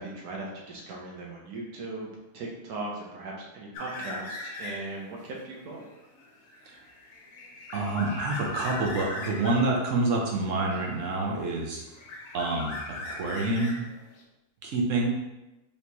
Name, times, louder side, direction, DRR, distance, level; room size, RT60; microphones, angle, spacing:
voice 1, 0.0-2.1 2.3-5.8, right 2 dB, 85° right, -2 dB, 1.2 m, -38 dB
sound 1, 3.7-5.0 5.4-9.7 10.7-11.5 11.8-14.2, left 2 dB, 80° left, 1.2 m, -39 dB
voice 2, 7.7-11.8 12.3-12.7 13.1-13.8 14.6-15.1, right 2 dB, 65° right, -1 dB, 1.0 m, -27 dB
4.3 x 3.2 x 2.8 m, 0.97 s
omnidirectional pair, 1.6 m